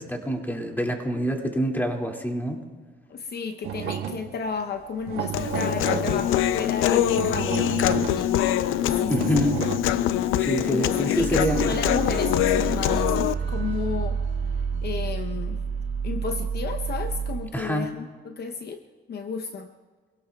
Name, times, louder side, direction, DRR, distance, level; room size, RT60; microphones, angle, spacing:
voice 1, 0.0-2.6 9.1-9.6 10.4-11.7 17.5-17.9, equal, 10° left, 1 dB, 2.4 m, -26 dB
voice 2, 3.1-8.5 9.0-9.5 10.6-13.2 13.5-14.2 14.8-15.6 16.0-18.8 19.1-19.7, left 5 dB, 55° left, 7 dB, 0.8 m, -32 dB
sound 1, 3.6-4.5 4.8-9.8, right 9 dB, 85° right, 1.3 m, -32 dB
Human voice, 5.3-13.3, left 12 dB, 85° left, 0.5 m, -24 dB
sound 2, 11.2-17.4, right 6 dB, 65° right, 1.7 m, -29 dB
26.0 x 17.5 x 2.3 m, 1.5 s
cardioid pair, 90°, 20 cm